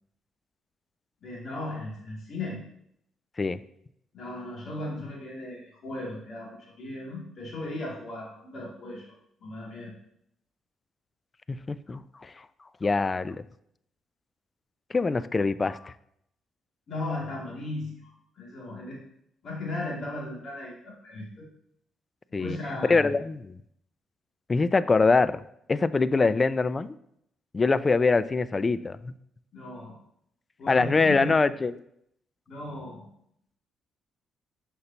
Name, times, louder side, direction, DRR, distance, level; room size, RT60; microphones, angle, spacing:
voice 1, 1.2-2.6 4.1-9.1 9.4-9.9 16.9-19.0 19.4-21.5 22.4-23.1 29.5-30.0 30.6-31.4 32.5-33.1, left 2 dB, 60° left, -3 dB, 2.5 m, -36 dB
voice 2, 11.5-12.5 12.8-13.4 14.9-15.9 22.3-22.6 22.8-23.4 24.5-25.4 25.7-26.9 27.5-29.1 30.7-31.8, left 4 dB, 35° left, 16 dB, 0.3 m, -24 dB
6.5 x 5.4 x 2.9 m, 0.72 s
hypercardioid pair, 50°, 0 cm